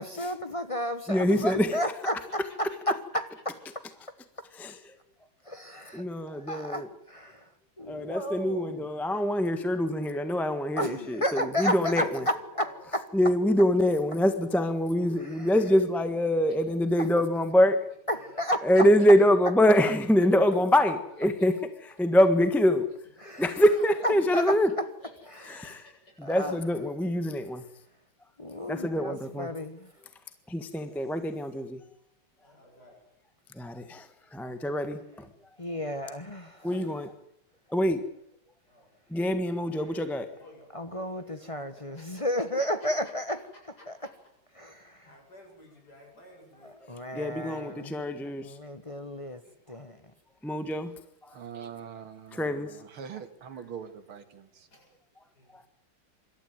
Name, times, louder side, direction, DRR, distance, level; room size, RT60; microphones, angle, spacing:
voice 1, 0.0-3.2 5.5-7.5 7.8-8.9 10.8-12.7 12.9-13.0 15.2-15.5 17.0-17.1 18.1-18.9 23.3-23.6 24.0-24.6 25.6-25.8 26.2-26.6 28.4-29.9 35.6-36.8 40.7-43.4 43.9-44.0 44.5-45.1 46.6-49.4 49.7-50.0, equal, 25° left, 9 dB, 0.8 m, -32 dB
voice 2, 1.1-1.8 4.6-4.8 5.9-6.9 7.9-12.2 13.1-17.8 18.6-21.5 22.0-22.9 23.4-24.7 25.5-25.8 26.2-27.6 28.7-29.5 30.5-31.8 33.6-35.3 36.6-37.1 37.7-38.0 39.1-40.3 47.1-48.6 50.4-50.9 52.3-52.7, equal, ahead, 9 dB, 1.1 m, -25 dB
voice 3, 11.9-12.9 13.4-13.5 16.5-16.6 18.1-18.4 20.4-20.5 21.1-21.2 23.2-23.9 25.0-25.1 25.4-25.9 28.5-29.0 32.4-33.1 35.8-36.0 36.6-37.0 38.7-38.9 40.3-42.2 42.6-42.7 43.8-44.1 45.0-47.0 47.4-47.8 49.4-49.5 49.9-50.1 54.7-54.9 55.3-55.5, left 2 dB, 50° left, 0 dB, 8.4 m, -53 dB
voice 4, 51.3-54.7, right 7 dB, 85° right, 7 dB, 2.7 m, -43 dB
25.5 x 13.0 x 9.3 m, 0.73 s
omnidirectional pair, 2.3 m